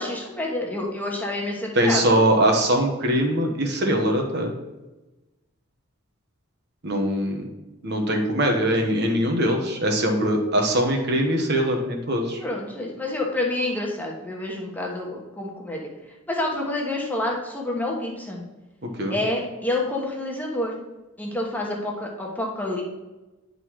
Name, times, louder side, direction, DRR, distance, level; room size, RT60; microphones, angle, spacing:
voice 1, 0.0-2.2 12.4-15.9 16.3-18.4 19.1-20.8 21.2-22.8, left 1 dB, 10° left, -2 dB, 1.2 m, -28 dB
voice 2, 1.7-4.5 6.8-7.4 7.8-12.4 19.0-19.2, right 1 dB, 50° right, 2 dB, 1.2 m, -22 dB
9.8 x 4.0 x 4.7 m, 1.1 s
head